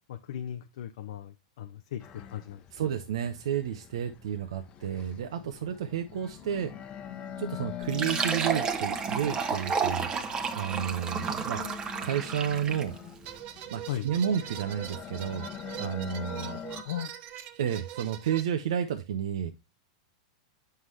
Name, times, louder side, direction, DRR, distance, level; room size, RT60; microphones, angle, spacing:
voice 1, 0.1-2.6 13.9-14.1 16.8-17.1, left 10 dB, 70° left, 0.6 m, -37 dB
sound 1, 2.0-16.8, left 10 dB, 35° left, 0.9 m, -43 dB
voice 2, 2.7-6.7 7.4-11.6 12.0-13.0 13.7-15.5 15.8-16.6 17.6-19.5, right 9 dB, 75° right, 0.8 m, -31 dB
Fill (with liquid), 7.8-13.0, right 5 dB, 25° right, 1.0 m, -31 dB
sound 2, 13.2-18.4, right 11 dB, 45° right, 0.9 m, -42 dB
7.9 x 5.7 x 3.2 m
hypercardioid pair, 115°, 3 cm